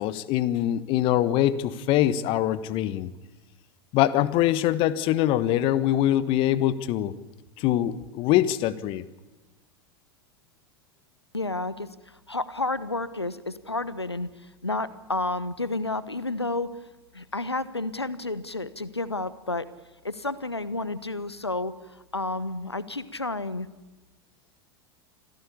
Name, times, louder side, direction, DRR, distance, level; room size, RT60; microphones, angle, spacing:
voice 1, 0.0-3.1 3.9-7.1 7.6-9.0, left 12 dB, 40° left, 16 dB, 1.3 m, -23 dB
voice 2, 11.3-11.9 12.3-14.3 14.6-16.7 17.1-19.7 20.0-21.7 22.1-23.7, left 2 dB, 85° left, 16 dB, 1.1 m, -30 dB
26.0 x 16.5 x 8.4 m, 1.1 s
figure-of-eight pair, 85°, 13 cm